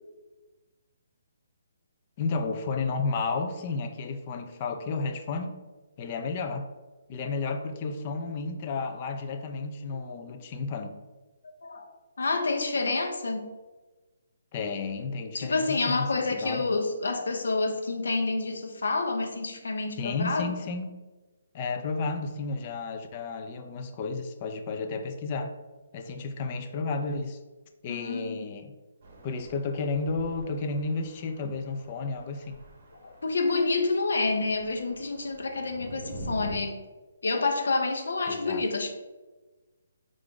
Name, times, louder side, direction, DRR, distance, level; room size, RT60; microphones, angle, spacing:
voice 1, 2.2-5.5 6.0-6.7 7.1-11.0 14.5-16.6 20.0-20.9 21.5-25.6 25.9-27.4 27.8-28.7 29.2-32.6 38.3-38.6, left 4 dB, 30° left, 6 dB, 0.4 m, -32 dB
voice 2, 10.1-10.4 11.6-11.9 12.2-13.5 15.3-20.5 27.9-28.5 33.0-36.8 37.2-38.9, left 3 dB, 80° left, 4 dB, 0.7 m, -28 dB
sound 1, 29.0-36.6, right 1 dB, 45° right, 0.8 m, -45 dB
4.6 x 2.5 x 3.7 m, 1.2 s
hypercardioid pair, 165°, 0 cm